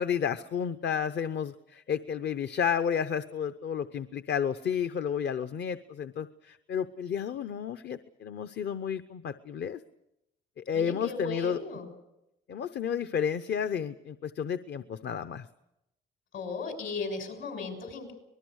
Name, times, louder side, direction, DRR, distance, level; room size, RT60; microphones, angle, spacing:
voice 1, 0.0-9.8 10.6-11.6 12.5-15.5, left 7 dB, 60° left, 11 dB, 0.8 m, -31 dB
voice 2, 10.7-11.9 16.3-18.1, left 4 dB, 75° left, 5 dB, 6.6 m, -36 dB
25.0 x 20.0 x 6.4 m, 0.87 s
cardioid pair, 90°, 20 cm